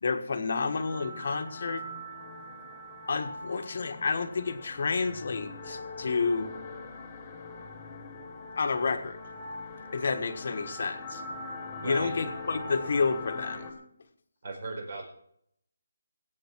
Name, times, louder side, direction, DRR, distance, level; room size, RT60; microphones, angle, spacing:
voice 1, 0.0-1.8 3.1-6.5 8.6-9.2 9.9-11.2 11.8-13.7, left 4 dB, 45° left, 7 dB, 1.5 m, -30 dB
sound 1, 0.7-13.7, left 2 dB, 15° left, 2.1 m, -42 dB
voice 2, 11.8-12.3 14.4-15.1, right 3 dB, 45° right, 3 dB, 4.5 m, -38 dB
20.5 x 8.7 x 4.6 m, 0.70 s
hypercardioid pair, 175°, 0 cm